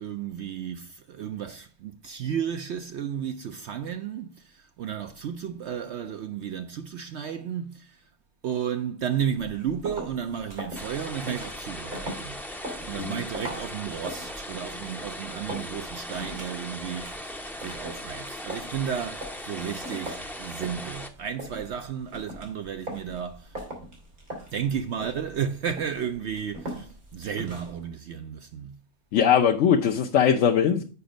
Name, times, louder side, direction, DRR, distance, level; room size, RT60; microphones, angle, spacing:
voice 1, 0.0-8.0 8.4-12.4 12.8-17.3 17.6-23.6 24.5-28.8, right 8 dB, 65° right, 0.7 m, -33 dB
sound 1, 9.4-27.9, right 1 dB, 90° right, 3.0 m, -41 dB
sound 2, 10.7-21.1, equal, ahead, 0.5 m, -39 dB
voice 2, 29.1-30.8, left 8 dB, 65° left, 1.0 m, -21 dB
6.9 x 5.1 x 5.1 m
omnidirectional pair, 1.5 m